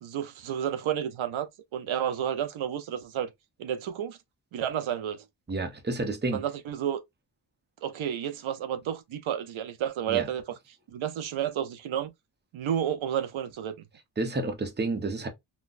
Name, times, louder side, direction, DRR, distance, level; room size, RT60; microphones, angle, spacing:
voice 1, 0.0-3.3 3.6-4.2 4.5-5.2 6.3-7.0 7.8-10.4 10.9-12.1 12.5-13.7, right 9 dB, 85° right, 0.6 m, -31 dB
voice 2, 5.5-6.4 10.1-10.3 14.2-15.3, right 2 dB, 20° right, 0.8 m, -30 dB
3.8 x 2.3 x 2.4 m
wide cardioid pair, 85°, 46 cm